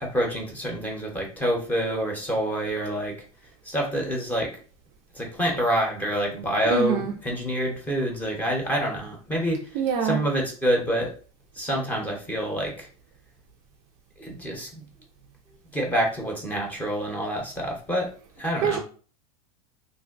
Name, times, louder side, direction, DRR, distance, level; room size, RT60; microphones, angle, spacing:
voice 1, 0.0-3.1 3.6-4.5 5.1-11.1 11.5-12.9 14.2-14.8 15.7-18.1 18.4-18.8, equal, 10° left, 0 dB, 0.8 m, -27 dB
voice 2, 6.7-7.1 9.7-10.2 18.6-18.8, right 7 dB, 35° right, 2 dB, 0.4 m, -24 dB
2.5 x 2.1 x 3.9 m, 0.39 s
supercardioid pair, 145°, 19 cm